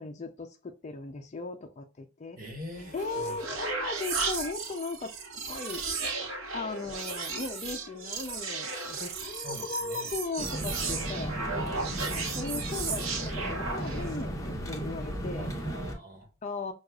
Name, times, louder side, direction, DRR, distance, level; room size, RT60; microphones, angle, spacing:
voice 1, 0.0-2.4 2.9-5.1 5.5-5.8 6.5-11.3 12.0-15.5 16.4-16.7, left 3 dB, 35° left, 0.4 m, -37 dB
voice 2, 2.4-3.4 9.3-9.6 9.9-10.1 15.4-16.3, left 1 dB, 40° right, 1.3 m, -43 dB
sound 1, 2.7-14.2, right 4 dB, 75° right, 0.9 m, -35 dB
sound 2, 10.4-15.9, right 1 dB, 15° left, 0.9 m, -35 dB
6.2 x 2.3 x 2.3 m
head